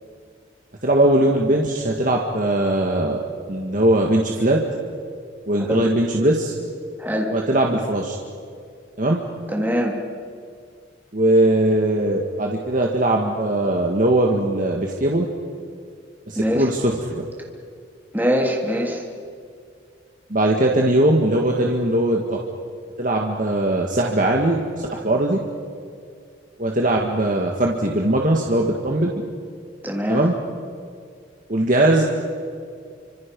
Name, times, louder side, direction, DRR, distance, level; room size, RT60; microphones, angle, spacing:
voice 1, 0.8-3.2 3.5-4.6 5.5-6.5 7.3-8.2 9.0-9.2 11.1-15.3 16.3-17.2 20.3-22.4 23.0-25.4 26.6-29.1 30.1-30.3 31.5-32.0, right 1 dB, 45° right, 0 dB, 1.9 m, -20 dB
voice 2, 7.0-7.3 9.5-9.9 16.3-16.6 18.1-19.0 29.8-30.2, equal, 10° right, 0 dB, 3.2 m, -22 dB
30.0 x 26.0 x 5.4 m, 2.2 s
head